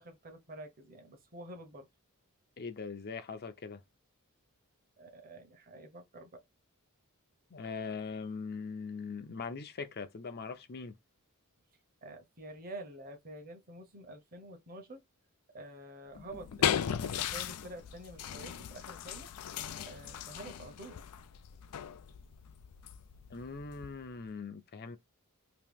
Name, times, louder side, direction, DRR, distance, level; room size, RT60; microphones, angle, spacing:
voice 1, 0.0-1.9 5.0-6.4 12.0-15.0 15.5-19.3 19.9-21.0, right 1 dB, 40° right, 1.0 m, -48 dB
voice 2, 2.6-3.8 7.5-10.9 23.3-25.0, left 4 dB, 45° left, 0.6 m, -41 dB
sound 1, 16.1-24.2, left 9 dB, 90° left, 0.4 m, -37 dB
3.0 x 2.8 x 3.5 m
head